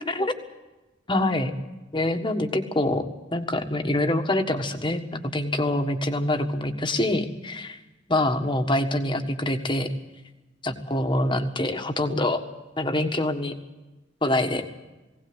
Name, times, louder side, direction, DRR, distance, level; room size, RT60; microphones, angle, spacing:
voice 1, 1.1-1.5 1.9-3.0 3.3-7.8 8.1-9.9 10.6-12.4 12.8-13.5 14.2-14.6, left 1 dB, 25° left, 6 dB, 1.6 m, -25 dB
20.0 x 17.5 x 8.0 m, 1.1 s
head